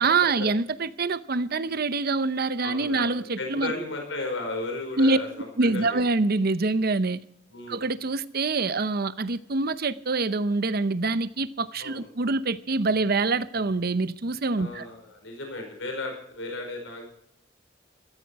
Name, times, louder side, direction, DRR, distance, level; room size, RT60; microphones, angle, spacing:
voice 1, 0.0-3.7 5.0-5.2 5.6-7.2 7.7-14.9, right 3 dB, 55° right, 0.8 m, -25 dB
voice 2, 2.6-6.0 7.5-7.8 11.8-12.1 14.6-17.1, left 2 dB, 85° left, 5.0 m, -34 dB
15.0 x 14.5 x 4.7 m
head